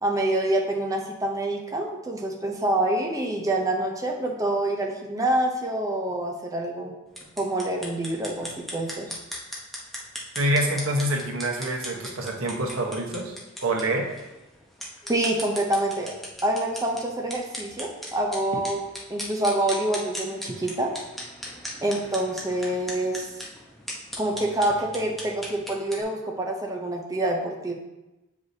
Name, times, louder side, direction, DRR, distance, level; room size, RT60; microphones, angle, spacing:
voice 1, 0.0-6.9 7.4-9.1 15.1-16.1 16.4-18.8 19.1-20.9 21.8-23.4 24.2-27.7, right 1 dB, 15° right, 0 dB, 0.6 m, -26 dB
sound 1, 7.1-26.0, equal, ahead, 0.9 m, -39 dB
voice 2, 10.4-13.3 13.6-14.1, right 1 dB, 85° right, 0 dB, 1.1 m, -26 dB
8.0 x 4.8 x 2.8 m, 1.0 s
head